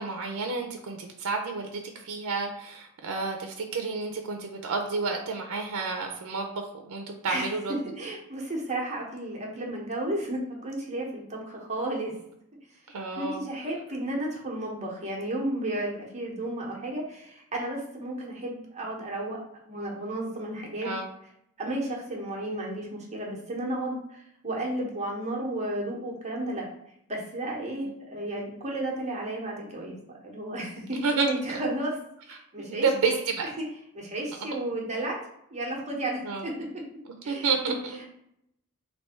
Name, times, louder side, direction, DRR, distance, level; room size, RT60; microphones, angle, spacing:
voice 1, 0.0-7.7 12.9-13.4 20.8-21.1 31.0-31.6 32.6-33.4 36.2-36.5 37.3-38.0, right 4 dB, 90° right, 4 dB, 0.5 m, -30 dB
voice 2, 8.0-12.1 13.2-19.4 19.7-20.9 21.6-26.7 27.1-30.0 30.2-32.0 32.2-33.2 33.6-33.7 33.9-35.2 35.5-36.5 37.2-37.5, right 1 dB, 30° right, -3 dB, 1.1 m, -33 dB
3.3 x 2.6 x 4.3 m, 0.76 s
head